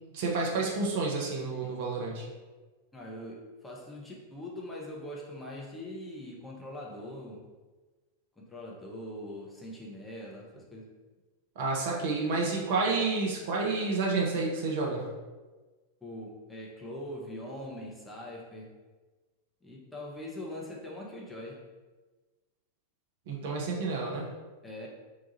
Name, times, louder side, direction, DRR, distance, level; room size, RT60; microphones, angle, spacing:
voice 1, 0.1-2.3 11.6-15.1 23.3-24.3, right 3 dB, 50° right, -2 dB, 0.7 m, -30 dB
voice 2, 2.9-7.4 8.4-10.9 16.0-18.7 19.6-21.6 24.6-24.9, left 1 dB, 10° left, -3 dB, 0.7 m, -42 dB
2.9 x 2.3 x 3.9 m, 1.3 s
figure-of-eight pair, 90°, 0 cm